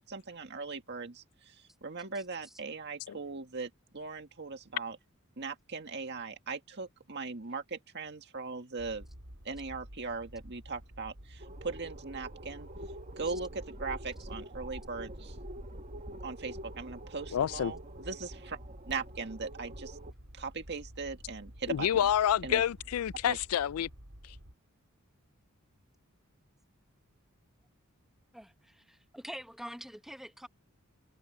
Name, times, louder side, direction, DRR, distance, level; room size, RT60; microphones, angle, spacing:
voice 1, 0.1-5.0 5.4-9.1 9.5-12.7 13.2-15.4 16.2-18.6 18.9-20.0 20.3-22.1 22.4-22.6 23.2-23.4, right 4 dB, 55° right, 1.9 m, -39 dB
sound 1, 8.8-24.5, equal, 75° right, 5.2 m, -51 dB
sound 2, 11.4-20.1, right 1 dB, 35° right, 1.6 m, -46 dB
voice 2, 17.3-17.7 21.7-23.9, left 10 dB, 85° left, 0.4 m, -28 dB
voice 3, 28.3-30.5, equal, ahead, 0.9 m, -45 dB
head